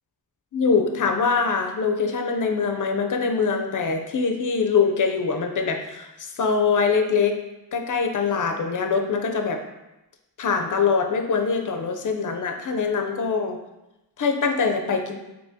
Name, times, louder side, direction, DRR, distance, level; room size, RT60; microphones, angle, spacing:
voice 1, 0.5-7.4 7.7-9.6 10.4-13.6 14.2-15.2, left 5 dB, 50° left, 4 dB, 0.4 m, -23 dB
3.4 x 2.8 x 2.6 m, 0.95 s
wide cardioid pair, 60°, 40 cm